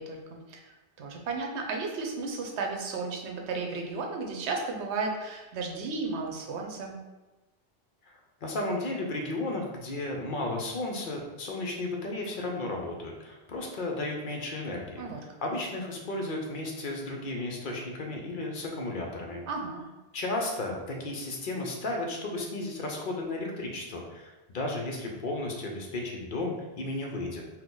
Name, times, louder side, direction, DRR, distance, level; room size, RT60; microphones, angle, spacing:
voice 1, 0.0-7.0 15.0-15.2 19.5-19.8, right 3 dB, 90° right, 2 dB, 1.0 m, -34 dB
voice 2, 8.1-15.0 15.4-19.4 20.1-27.4, left 2 dB, 55° left, 0 dB, 0.7 m, -34 dB
4.5 x 2.1 x 3.8 m, 1.1 s
omnidirectional pair, 1.1 m